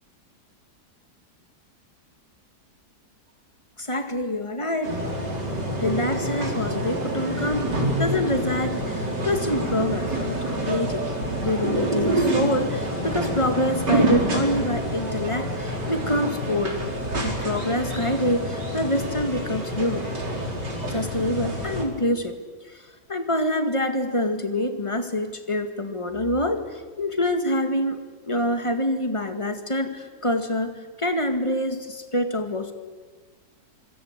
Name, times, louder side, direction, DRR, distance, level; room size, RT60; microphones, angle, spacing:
voice 1, 3.8-5.0 5.8-7.7 8.0-11.0 11.4-16.8 17.2-20.1 20.9-22.4 22.7-32.7, left 1 dB, 20° left, 7 dB, 2.1 m, -26 dB
sound 1, 4.8-21.8, right 1 dB, 90° right, 4.7 m, -27 dB
25.5 x 25.0 x 8.3 m, 1.4 s
omnidirectional pair, 1.8 m